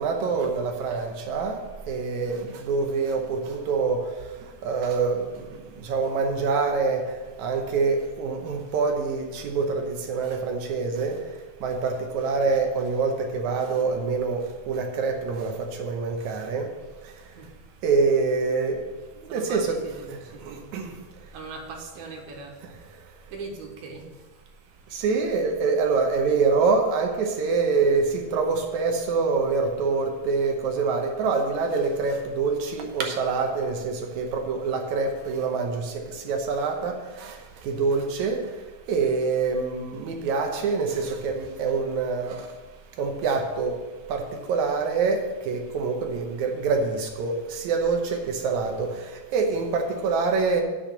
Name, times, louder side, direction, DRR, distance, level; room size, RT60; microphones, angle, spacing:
voice 1, 0.0-1.6 1.9-4.0 4.6-5.2 5.8-7.0 7.4-11.2 11.6-14.4 14.7-16.7 17.8-18.8 19.2-19.8 20.4-20.9 24.9-35.9 36.2-37.4 37.6-38.4 38.9-42.4 43.0-43.7 44.1-44.2 44.5-48.9 49.3-50.6, right 4 dB, 70° right, 4 dB, 2.0 m, -25 dB
voice 2, 19.3-20.7 21.3-22.6 23.3-24.4 27.8-27.9, right 3 dB, 85° right, 1 dB, 3.4 m, -40 dB
8.3 x 6.3 x 7.3 m, 1.2 s
omnidirectional pair, 4.2 m